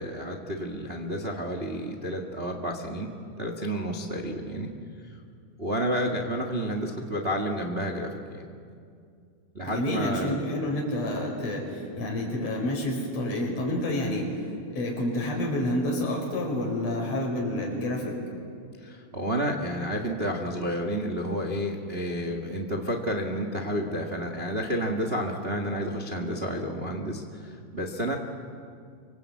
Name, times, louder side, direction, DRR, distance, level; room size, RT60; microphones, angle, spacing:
voice 1, 0.0-3.1 3.4-4.7 5.6-8.4 9.5-10.4 18.8-28.1, equal, 60° right, 3 dB, 0.6 m, -30 dB
voice 2, 9.6-14.3 14.7-18.2, left 1 dB, 45° left, -1 dB, 6.0 m, -29 dB
25.5 x 24.5 x 8.3 m, 2.4 s
omnidirectional pair, 4.3 m